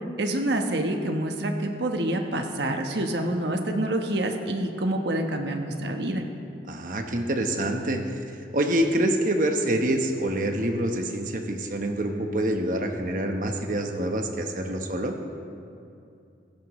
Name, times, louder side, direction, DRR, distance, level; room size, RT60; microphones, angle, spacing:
voice 1, 0.2-6.2, right 1 dB, 75° right, 4 dB, 1.1 m, -27 dB
voice 2, 6.7-8.1 8.5-15.1, right 1 dB, 50° right, 4 dB, 1.2 m, -26 dB
16.5 x 16.0 x 3.2 m, 2.6 s
head